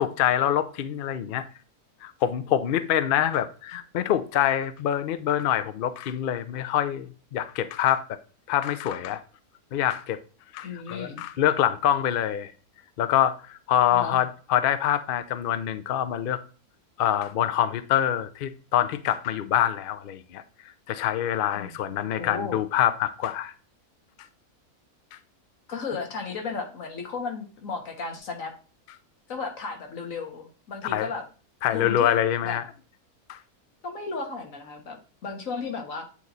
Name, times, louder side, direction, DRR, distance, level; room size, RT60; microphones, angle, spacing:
voice 1, 0.0-1.4 2.0-8.0 8.5-9.2 9.7-10.2 10.5-12.5 13.0-16.4 17.0-20.4 20.9-23.5 30.9-31.1 31.6-32.6 33.3-33.4, left 11 dB, 80° left, 0.4 m, -25 dB
voice 2, 10.6-11.2 13.9-14.2 21.5-21.9 22.2-22.6 25.7-28.5 29.3-31.2 31.7-32.2 32.4-32.6 33.8-36.1, left 4 dB, 65° left, 1.6 m, -34 dB
8.3 x 3.1 x 4.0 m
omnidirectional pair, 1.6 m